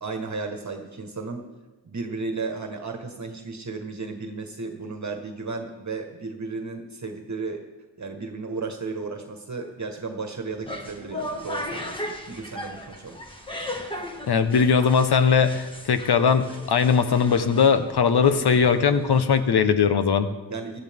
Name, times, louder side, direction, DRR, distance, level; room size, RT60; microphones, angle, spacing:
voice 1, 0.0-1.4 1.8-7.6 8.0-13.2 20.5-20.8, right 4 dB, 40° right, 4 dB, 1.6 m, -34 dB
sound 1, 10.5-19.5, left 1 dB, 10° left, 2.0 m, -37 dB
voice 2, 14.3-20.3, left 6 dB, 60° left, 10 dB, 1.2 m, -20 dB
16.5 x 13.0 x 3.7 m, 1.3 s
cardioid pair, 65°, 44 cm